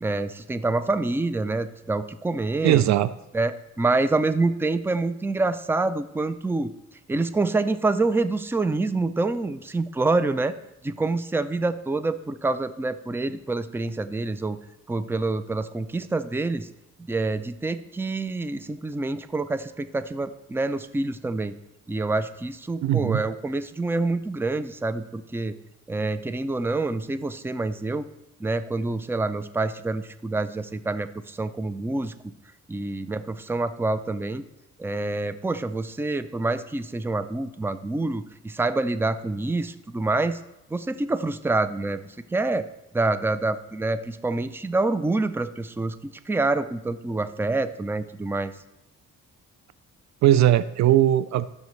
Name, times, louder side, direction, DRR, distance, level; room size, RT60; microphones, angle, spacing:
voice 1, 0.0-2.8 3.3-6.7 7.1-10.6 10.8-14.6 14.9-16.7 17.1-21.5 21.9-25.5 25.9-28.1 28.4-32.1 32.7-34.4 34.8-40.4 40.7-42.0 42.3-42.7 42.9-46.0 46.3-48.5, right 2 dB, 10° right, 12 dB, 0.5 m, -26 dB
voice 2, 2.6-3.1 22.8-23.2 50.2-51.5, right 12 dB, 65° right, 15 dB, 0.5 m, -19 dB
13.5 x 6.7 x 3.2 m, 0.91 s
cardioid pair, 90°, 30 cm